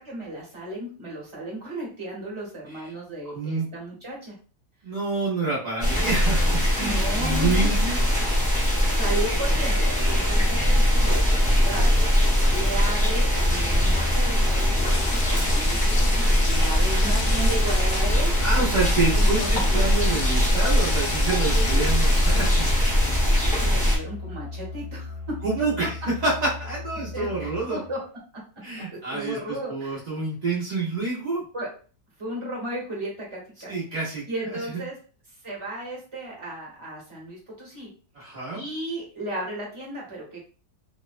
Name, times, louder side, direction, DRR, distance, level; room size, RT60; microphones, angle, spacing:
voice 1, 0.0-4.4 6.8-7.7 8.8-12.1 12.5-18.3 19.1-19.5 21.2-22.0 23.2-25.4 27.1-28.0 28.3-28.4 28.8-30.0 31.5-31.7 32.2-33.7 34.3-35.0 35.4-37.9 38.5-40.5, right 1 dB, 25° right, -4 dB, 0.8 m, -34 dB
voice 2, 3.3-3.7 4.8-8.0 15.2-15.6 18.4-22.7 25.4-25.9 26.2-26.3 26.6-27.8 28.6-31.4 33.7-34.2 34.7-34.8 38.1-38.7, right 3 dB, 60° right, -7 dB, 0.4 m, -28 dB
sound 1, 5.8-24.0, equal, 10° left, 0.5 m, -21 dB
Sink (filling or washing), 10.2-13.3 14.1-14.2 14.4-22.7, left 5 dB, 75° left, 1.2 m, -36 dB
Musical instrument, 16.4-28.1, left 3 dB, 55° left, 1.1 m, -37 dB
2.9 x 2.1 x 2.4 m, 0.38 s
omnidirectional pair, 1.9 m